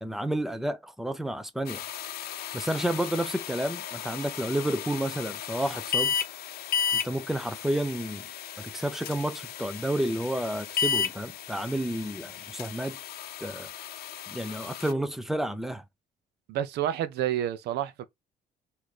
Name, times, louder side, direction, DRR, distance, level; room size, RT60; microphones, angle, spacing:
voice 1, 0.0-1.8 2.5-6.1 6.9-8.3 8.6-13.0 13.4-13.7 14.3-15.8, right 1 dB, ahead, 0.6 m, -30 dB
sound 1, 1.7-14.9, left 7 dB, 65° left, 0.7 m, -34 dB
voice 2, 16.5-18.1, right 11 dB, 80° right, 0.7 m, -29 dB
4.0 x 2.8 x 4.7 m
cardioid pair, 110°, 17 cm